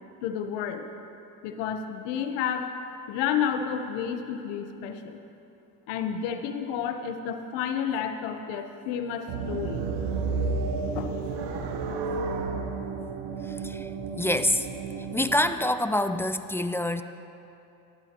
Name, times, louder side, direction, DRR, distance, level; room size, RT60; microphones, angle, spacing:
voice 1, 0.2-0.9 1.4-2.7 3.1-5.2 5.9-9.9 10.9-11.1, left 8 dB, 85° left, 7 dB, 1.0 m, -30 dB
sound 1, 9.3-15.5, right 4 dB, 75° right, 1.1 m, -31 dB
voice 2, 13.5-13.9 14.2-14.7 15.1-17.0, left 1 dB, 5° left, 10 dB, 0.5 m, -26 dB
18.5 x 13.0 x 3.0 m, 2.8 s
supercardioid pair, 75°, 41 cm